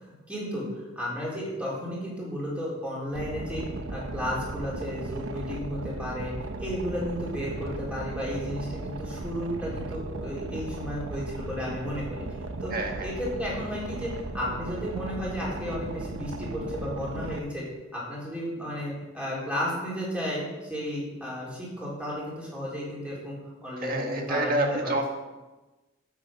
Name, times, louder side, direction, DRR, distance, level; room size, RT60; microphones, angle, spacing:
voice 1, 0.1-0.7 1.0-12.2 12.6-12.7 13.0-17.6 17.9-24.9, equal, 5° right, -6 dB, 3.8 m, -33 dB
Boat Water vehicle, 3.1-17.4, right 2 dB, 90° right, 0.8 m, -36 dB
voice 2, 12.7-13.1 23.8-25.1, right 2 dB, 45° right, 2 dB, 1.7 m, -28 dB
9.7 x 8.3 x 5.9 m, 1.1 s
head